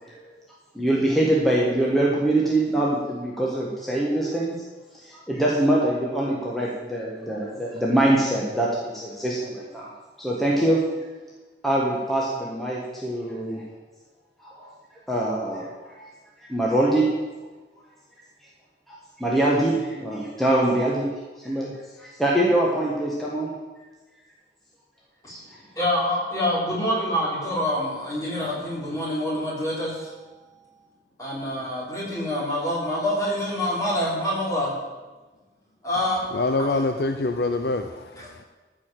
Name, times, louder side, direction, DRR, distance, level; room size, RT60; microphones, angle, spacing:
voice 1, 0.7-4.5 5.0-9.9 10.2-10.8 11.6-13.6 14.4-14.7 15.1-15.6 16.5-17.0 18.9-21.1 21.4-21.7 22.0-23.5, right 1 dB, ahead, -5 dB, 1.4 m, -23 dB
voice 2, 25.2-30.6 31.2-34.7 35.8-36.2 38.2-38.3, left 1 dB, 20° left, -5 dB, 3.6 m, -26 dB
voice 3, 36.3-38.4, left 2 dB, 60° left, 7 dB, 0.6 m, -25 dB
13.5 x 5.0 x 7.6 m, 1.2 s
head